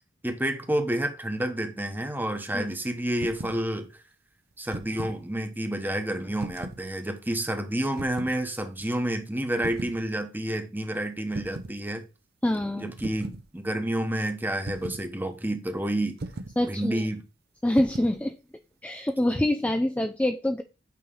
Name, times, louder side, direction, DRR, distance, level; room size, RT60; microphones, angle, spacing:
voice 1, 0.2-3.9 4.6-12.0 12.8-16.2 16.7-17.2, right 1 dB, 10° right, 1.0 m, -29 dB
sound 1, 3.1-3.6 4.5-5.2 6.4-6.9 7.9-8.4 9.6-10.0 11.3-11.8 13.0-13.4 14.7-15.1 16.2-16.6 17.8-18.2, right 2 dB, 55° right, 0.7 m, -37 dB
voice 2, 12.4-12.9 16.6-17.0 17.6-18.4 18.8-20.6, left 1 dB, 10° left, 0.4 m, -25 dB
8.4 x 3.2 x 5.4 m
head